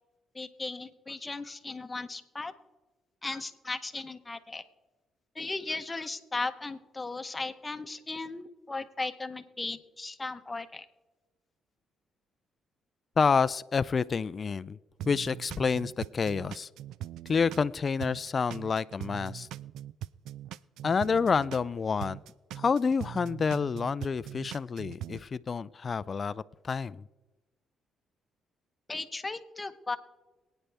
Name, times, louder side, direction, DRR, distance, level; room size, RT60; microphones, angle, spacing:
voice 1, 0.3-2.5 3.2-4.6 5.3-10.9 28.9-30.0, left 3 dB, 20° left, 8 dB, 0.9 m, -36 dB
voice 2, 13.2-14.8 15.0-16.7 17.3-19.5 20.8-22.2 22.6-27.0, left 5 dB, 40° left, 16 dB, 0.3 m, -28 dB
sound 1, 15.0-17.7 18.0-21.7 22.0-25.2, right 12 dB, 85° right, 0.3 m, -41 dB
23.5 x 9.1 x 3.4 m, 1.2 s
cardioid pair, 90°, 0 cm